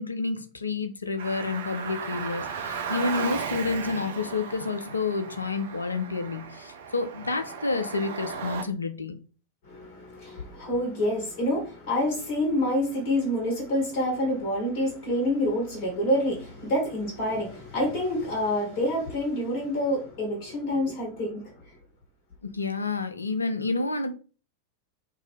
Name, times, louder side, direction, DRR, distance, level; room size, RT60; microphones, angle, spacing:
voice 1, 0.0-9.2 22.5-24.1, left 3 dB, 80° left, 0.4 m, -29 dB
Car, 1.2-8.6, right 6 dB, 60° right, 0.4 m, -36 dB
voice 2, 9.7-21.4, left 1 dB, 45° left, 1.3 m, -27 dB
2.7 x 2.5 x 3.1 m
figure-of-eight pair, 90°, 0 cm